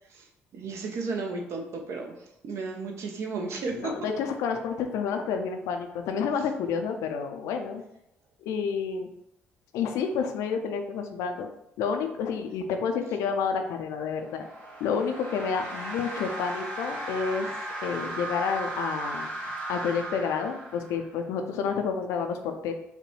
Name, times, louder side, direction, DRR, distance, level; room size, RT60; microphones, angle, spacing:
voice 1, 0.5-4.0, right 3 dB, 55° right, 2 dB, 0.7 m, -34 dB
voice 2, 3.7-7.8 8.5-9.1 9.7-11.5 11.8-14.5 14.8-17.5 17.8-19.3 19.7-22.7, left 6 dB, 65° left, 5 dB, 0.4 m, -29 dB
sound 1, 14.1-21.2, right 2 dB, 70° right, 1.0 m, -36 dB
5.0 x 2.2 x 3.1 m, 0.80 s
figure-of-eight pair, 45°, 6 cm